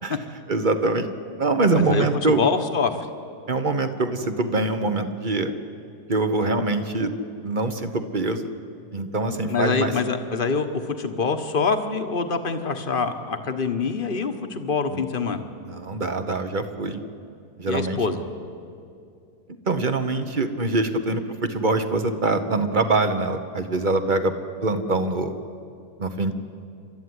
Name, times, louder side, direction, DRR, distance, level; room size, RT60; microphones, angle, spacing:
voice 1, 0.5-1.1 1.4-2.4 3.5-5.5 6.1-7.1 7.4-8.5 8.9-9.9 14.9-15.0 15.6-17.0 17.6-18.0 19.7-24.3 24.6-25.3 26.0-26.3, right 2 dB, 35° right, 8 dB, 1.2 m, -24 dB
voice 2, 1.7-3.1 9.5-15.4 17.7-18.2, left 4 dB, 35° left, 7 dB, 1.3 m, -25 dB
29.0 x 13.0 x 9.6 m, 2.4 s
omnidirectional pair, 1.7 m